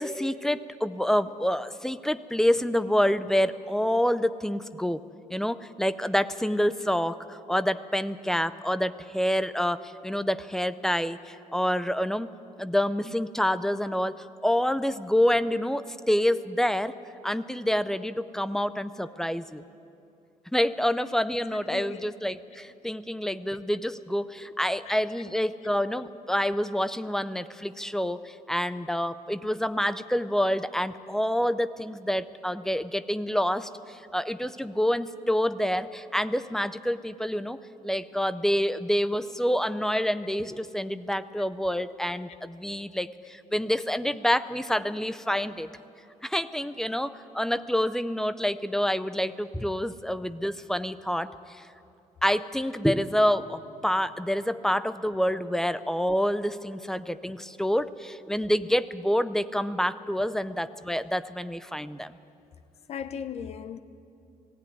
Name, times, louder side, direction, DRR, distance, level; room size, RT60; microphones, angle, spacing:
voice 1, 0.0-5.0 5.3-12.3 12.6-14.2 14.4-16.9 17.2-19.6 20.5-37.6 37.8-45.7 46.2-51.6 52.2-62.1, equal, 5° left, 0.5 m, -27 dB
voice 2, 21.7-22.1 24.9-25.0 26.0-26.1 39.3-39.4 41.6-41.7 62.9-63.8, left 7 dB, 50° left, 0.8 m, -37 dB
18.5 x 16.5 x 9.7 m
cardioid pair, 165°, 14 cm